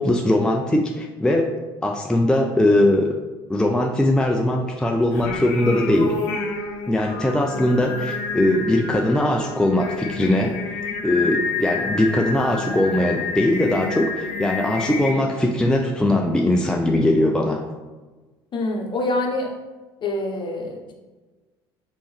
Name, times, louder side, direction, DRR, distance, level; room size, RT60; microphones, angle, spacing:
voice 1, 0.0-1.5 1.8-3.2 3.5-6.2 6.9-10.6 11.0-17.6, left 1 dB, 5° left, 1 dB, 0.3 m, -20 dB
Singing, 5.1-15.1, left 4 dB, 65° left, 0.6 m, -29 dB
voice 2, 18.5-19.5 20.0-20.9, left 2 dB, 40° left, 1 dB, 0.8 m, -25 dB
3.5 x 3.0 x 3.2 m, 1.2 s
hypercardioid pair, 60°, 13 cm